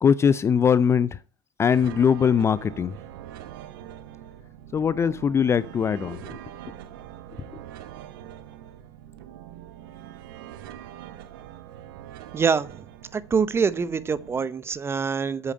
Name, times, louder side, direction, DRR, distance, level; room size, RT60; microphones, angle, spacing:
voice 1, 0.0-1.2 1.6-3.0 4.7-6.4, left 7 dB, 20° left, 0.5 m, -21 dB
sound 1, 1.7-14.5, right 11 dB, 60° right, 1.3 m, -43 dB
voice 2, 12.3-12.9 13.1-15.5, right 6 dB, 20° right, 0.9 m, -25 dB
8.9 x 8.3 x 5.6 m
hypercardioid pair, 90°, 13 cm